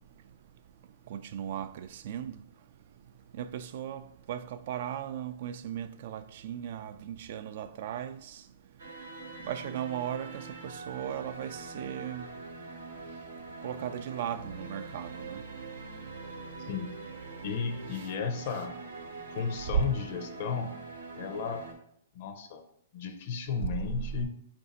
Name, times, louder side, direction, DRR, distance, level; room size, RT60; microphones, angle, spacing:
voice 1, 1.1-2.4 3.4-4.0 4.3-8.4 9.4-12.3 13.6-15.4, right 10 dB, 55° right, 0.3 m, -37 dB
sound 1, 8.8-21.7, right 3 dB, 85° right, 0.8 m, -44 dB
voice 2, 16.6-17.0 17.4-18.8 19.3-20.9 21.2-21.6 22.1-22.6 22.9-24.3, left 6 dB, 55° left, 0.5 m, -34 dB
4.7 x 2.6 x 4.0 m
hypercardioid pair, 140°, 0 cm